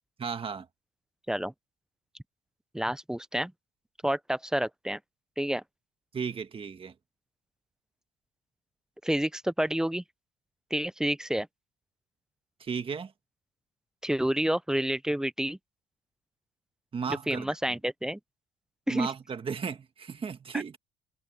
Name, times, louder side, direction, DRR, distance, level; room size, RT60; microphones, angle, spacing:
voice 1, 0.2-0.7 6.1-6.9 12.6-13.1 16.9-17.6 18.9-20.8, right 6 dB, 30° right, 1.8 m, -34 dB
voice 2, 2.7-3.5 4.0-5.0 5.4-5.6 9.0-10.0 10.7-11.5 14.0-15.6 17.3-18.2 18.9-19.1, right 1 dB, 5° right, 0.6 m, -29 dB
cardioid pair, 110°, 17 cm